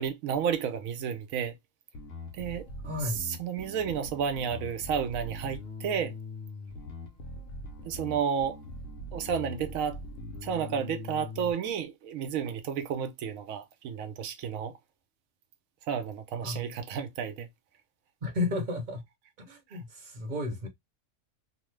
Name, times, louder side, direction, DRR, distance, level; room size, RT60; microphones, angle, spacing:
voice 1, 0.0-1.5 2.3-2.7 3.1-6.1 7.9-8.6 9.1-10.0 10.4-14.7 15.9-17.5 19.7-19.8, right 7 dB, 85° right, 1.0 m, -31 dB
Bass guitar, 1.9-11.5, left 2 dB, 70° left, 1.0 m, -42 dB
voice 2, 2.8-3.2 16.4-16.7 18.2-19.0 19.4-20.7, left 2 dB, 40° right, 0.9 m, -33 dB
3.0 x 2.1 x 3.1 m
omnidirectional pair, 1.4 m